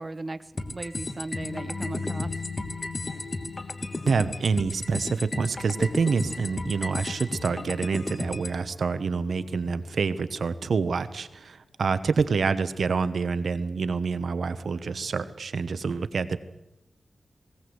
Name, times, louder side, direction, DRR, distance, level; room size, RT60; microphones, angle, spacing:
voice 1, 0.0-2.3, right 2 dB, 35° right, 11 dB, 0.8 m, -37 dB
sound 1, 0.6-8.6, left 2 dB, 35° left, 1.4 m, -35 dB
sound 2, 1.3-11.2, left 4 dB, 75° left, 1.6 m, -41 dB
voice 2, 4.1-16.4, right 5 dB, 85° right, 13 dB, 1.0 m, -27 dB
18.5 x 18.5 x 7.9 m, 0.90 s
wide cardioid pair, 115°, 0 cm